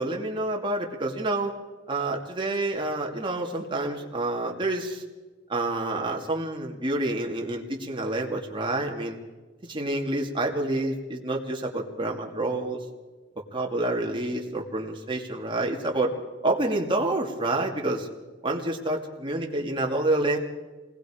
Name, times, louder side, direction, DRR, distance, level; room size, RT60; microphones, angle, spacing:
voice 1, 0.0-1.5 1.9-5.0 5.5-9.2 9.7-12.8 13.5-16.1 16.4-18.1 18.4-20.4, right 2 dB, 25° right, 0 dB, 2.4 m, -28 dB
27.0 x 20.0 x 5.0 m, 1.3 s
head